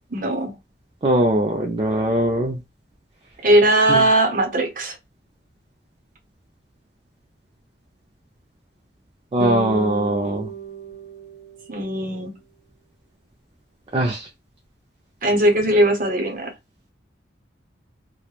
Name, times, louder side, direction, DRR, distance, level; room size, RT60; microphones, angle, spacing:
voice 1, 0.1-0.5 3.4-5.0 11.7-12.3 15.2-16.5, right 1 dB, 45° right, 0.7 m, -19 dB
voice 2, 1.0-2.6 3.9-4.1 9.3-10.5 13.9-14.3, right 1 dB, 30° right, 0.3 m, -21 dB
sound 1, 9.4-11.9, right 4 dB, 45° left, 0.4 m, -32 dB
3.0 x 2.1 x 2.3 m
head